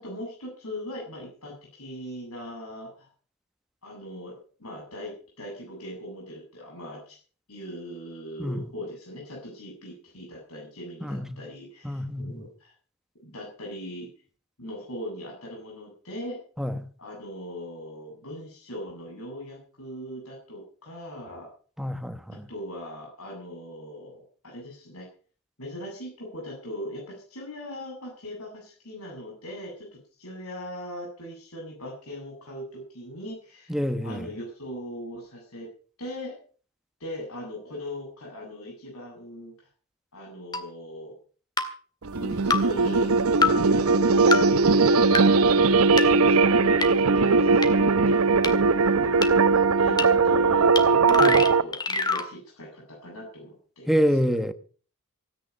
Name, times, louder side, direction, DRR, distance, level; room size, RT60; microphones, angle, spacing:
voice 1, 0.0-3.1 3.8-7.2 7.5-12.7 13.2-14.1 14.6-16.4 17.0-21.5 22.5-25.1 25.6-33.7 34.0-35.7 36.0-36.3 37.0-39.5 40.1-41.2 42.1-43.1 43.5-49.1 49.8-54.3, equal, 80° left, 7.9 m, -40 dB
voice 2, 11.0-11.4 11.8-12.4 16.6-16.8 21.8-22.5 33.7-34.3 51.2-51.4 53.9-54.5, equal, ahead, 1.1 m, -27 dB
sound 1, 40.5-40.6 41.6-41.7 42.5-42.6 43.4-43.5 44.3-44.4 45.1-45.2 46.0-46.1 46.8-46.9 47.6-47.7 48.4-48.5 49.2-49.3 50.0-50.1 50.8-50.9 51.1-52.3, left 4 dB, 20° left, 1.9 m, -24 dB
sound 2, 42.0-51.6, right 4 dB, 80° right, 0.8 m, -20 dB
17.0 x 10.0 x 6.8 m
head